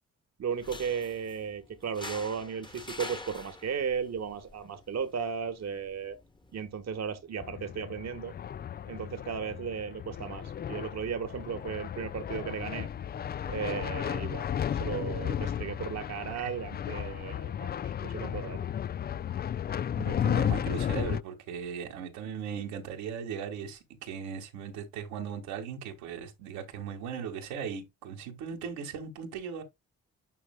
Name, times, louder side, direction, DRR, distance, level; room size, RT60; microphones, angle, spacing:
voice 1, 0.4-6.2 6.5-8.3 8.9-12.9 13.5-18.6, right 6 dB, 50° right, 1.3 m, -35 dB
sound 1, 0.5-7.5, left 2 dB, 15° left, 1.3 m, -47 dB
sound 2, 7.4-21.2, left 9 dB, 30° left, 0.4 m, -34 dB
voice 2, 20.0-29.6, right 7 dB, 80° right, 1.9 m, -38 dB
9.7 x 5.3 x 2.3 m
hypercardioid pair, 40°, 35 cm